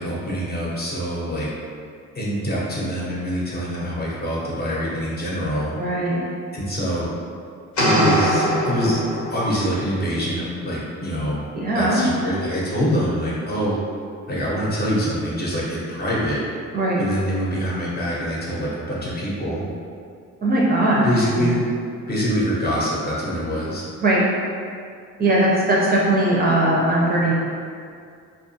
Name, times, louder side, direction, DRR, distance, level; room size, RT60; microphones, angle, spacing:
voice 1, 0.0-1.5 2.1-5.8 6.5-7.1 7.8-9.0 9.3-11.5 11.7-13.8 14.3-16.4 17.0-19.6 21.0-21.7 22.1-23.8, equal, 30° left, -6 dB, 0.7 m, -25 dB
voice 2, 5.8-6.2 11.5-12.0 16.7-17.0 20.4-21.1 21.4-21.6 24.0-24.2 25.2-27.3, right 1 dB, 30° right, -5 dB, 0.4 m, -19 dB
sound 1, 7.8-9.7, equal, 70° left, 0.9 m, -21 dB
2.5 x 2.3 x 2.7 m, 2.3 s
cardioid pair, 90°, 30 cm